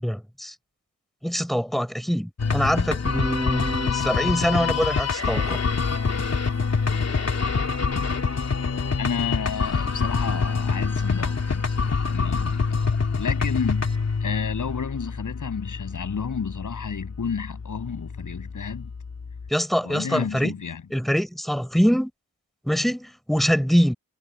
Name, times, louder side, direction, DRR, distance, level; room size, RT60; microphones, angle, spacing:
voice 1, 0.0-0.5 1.2-5.6 19.5-20.5 20.9-22.1 22.6-23.9, equal, ahead, 7.3 m, -24 dB
sound 1, 2.4-19.5, left 5 dB, 50° left, 2.9 m, -26 dB
voice 2, 9.0-11.8 12.1-12.6 13.2-13.9 14.2-18.9 19.8-20.8, left 6 dB, 65° left, 7.8 m, -31 dB
wide cardioid pair, 115°, 33 cm